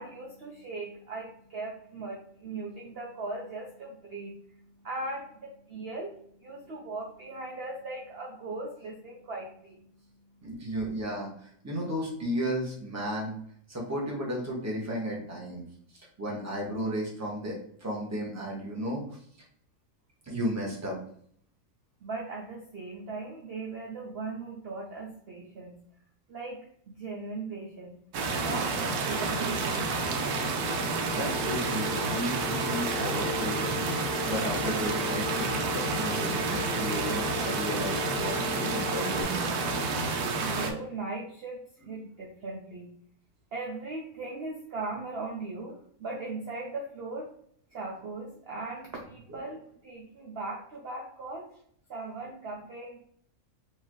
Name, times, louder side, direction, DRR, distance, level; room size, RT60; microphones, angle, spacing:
voice 1, 0.0-9.8 22.0-25.8 26.3-26.6 26.9-28.0 28.4-29.9 40.4-41.6 41.9-43.0 43.5-47.3 47.7-51.5 51.9-53.0, right 3 dB, 50° right, -2 dB, 0.8 m, -38 dB
voice 2, 10.4-13.3 13.7-15.6 15.9-19.0 20.2-21.0 30.6-30.8 31.1-33.8 34.2-39.7 41.8-41.9 49.3-49.4, equal, 10° right, -3 dB, 1.0 m, -34 dB
sound 1, 28.1-40.7, right 3 dB, 80° right, 1.2 m, -30 dB
Telephone, 31.2-39.2, left 9 dB, 35° right, 0.5 m, -39 dB
4.6 x 2.9 x 3.0 m, 0.64 s
omnidirectional pair, 1.6 m